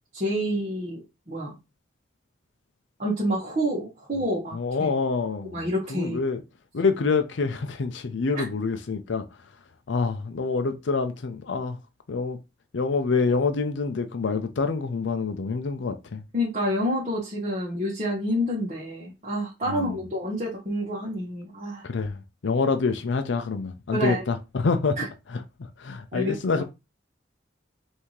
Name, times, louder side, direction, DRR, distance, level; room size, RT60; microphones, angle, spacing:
voice 1, 0.1-1.5 3.0-4.9 5.5-6.2 8.3-8.5 16.3-21.8 23.9-24.2 25.0-25.1 26.1-26.6, equal, 40° right, 1.4 m, -28 dB
voice 2, 4.5-5.6 5.9-6.4 6.7-9.2 9.9-11.8 12.1-12.4 12.7-16.2 19.7-20.0 21.8-22.2 22.4-25.0 25.3-25.4 25.8-26.6, left 4 dB, 80° left, 0.5 m, -26 dB
5.6 x 2.7 x 3.1 m
head